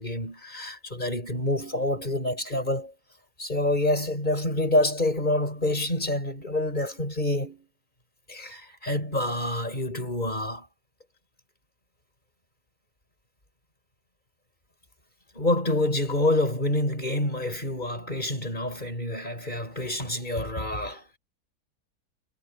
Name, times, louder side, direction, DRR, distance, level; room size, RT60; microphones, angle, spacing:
voice 1, 0.0-2.9 3.4-7.7 8.3-10.7 15.3-21.0, left 1 dB, 30° left, 6.9 m, -27 dB
omnidirectional pair, 1.7 m